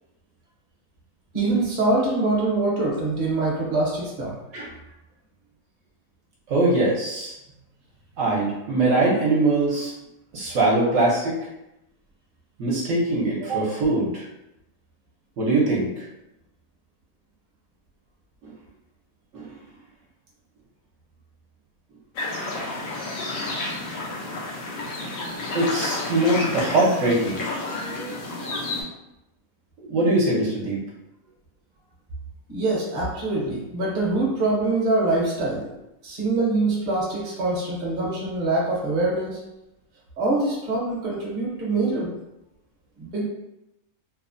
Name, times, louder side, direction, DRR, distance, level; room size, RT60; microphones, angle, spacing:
voice 1, 1.3-4.4 32.5-35.7 36.0-39.4 40.2-42.1 43.0-43.2, right 2 dB, 45° right, -4 dB, 0.8 m, -24 dB
voice 2, 6.5-7.3 8.2-9.9 10.3-11.4 12.6-14.3 15.4-16.0 18.4-18.5 19.3-19.5 25.5-27.5 29.8-30.8, right 2 dB, 70° right, -5 dB, 1.0 m, -22 dB
sound 1, 22.2-28.8, left 2 dB, 85° left, 1.0 m, -30 dB
2.9 x 2.0 x 2.5 m, 0.91 s
omnidirectional pair, 1.4 m